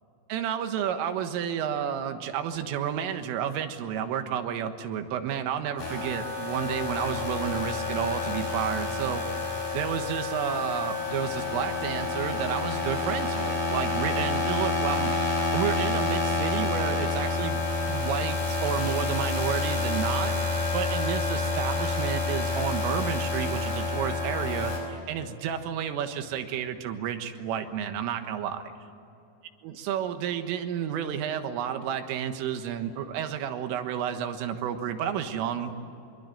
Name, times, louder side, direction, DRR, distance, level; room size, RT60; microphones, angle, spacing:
voice 1, 0.3-9.3 9.7-15.1 15.5-17.6 17.9-20.3 20.7-28.6 29.6-35.7, right 9 dB, 90° right, 7 dB, 4.0 m, -31 dB
sound 1, 5.8-24.8, left 3 dB, 45° left, 7.0 m, -29 dB
25.5 x 23.5 x 9.2 m, 2.8 s
omnidirectional pair, 5.7 m